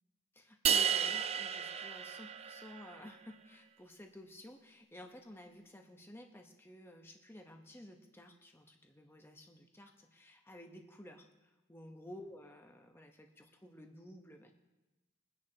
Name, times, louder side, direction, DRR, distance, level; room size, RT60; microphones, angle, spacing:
voice 1, 0.3-14.5, left 1 dB, 10° left, 3 dB, 0.9 m, -53 dB
sound 1, 0.6-2.9, right 8 dB, 30° right, 0.3 m, -33 dB
23.0 x 9.7 x 2.9 m, 1.1 s
head